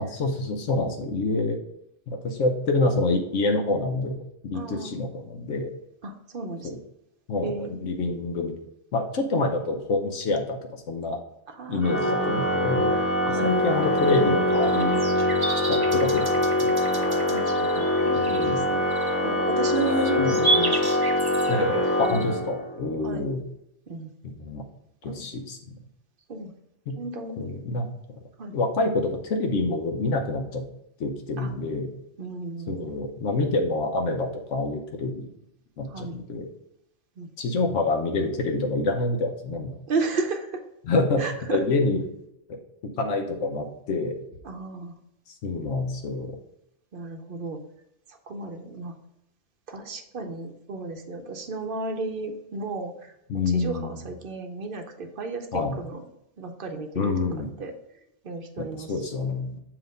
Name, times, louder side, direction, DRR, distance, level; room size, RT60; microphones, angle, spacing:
voice 1, 0.0-1.6 2.1-5.7 6.6-6.8 7.3-8.5 8.9-11.2 11.7-13.0 13.4-15.0 15.7-16.2 16.6-16.8 18.2-18.7 20.2-20.4 21.5-23.4 24.2-24.6 25.0-25.6 26.9-27.0 27.4-27.9 28.5-30.6 31.0-31.9 32.7-35.2 35.8-36.5 37.4-39.7 40.8-41.2 41.5-42.0 42.8-44.2 45.4-46.3 53.3-53.9 55.5-55.8 57.0-57.5 58.7-59.6, left 2 dB, 80° left, 3 dB, 1.1 m, -27 dB
voice 2, 4.5-4.9 6.0-6.7 7.4-7.7 11.5-12.1 13.3-13.5 17.3-18.8 19.2-20.8 23.0-23.3 23.9-24.1 25.0-25.3 26.3-26.5 27.0-27.5 28.4-28.6 31.4-31.5 32.2-32.9 35.9-36.2 37.2-37.3 39.9-40.6 41.2-41.6 44.4-44.9 46.9-47.6 48.1-48.9 49.7-56.0 56.4-57.1 57.6-57.7 58.2-59.3, right 3 dB, 55° right, 5 dB, 0.8 m, -33 dB
Organ, 11.8-22.8, left 1 dB, 10° left, 0.9 m, -24 dB
sound 1, 13.4-22.2, right 3 dB, 30° right, 0.5 m, -32 dB
7.5 x 2.9 x 5.1 m, 0.80 s
omnidirectional pair, 1.2 m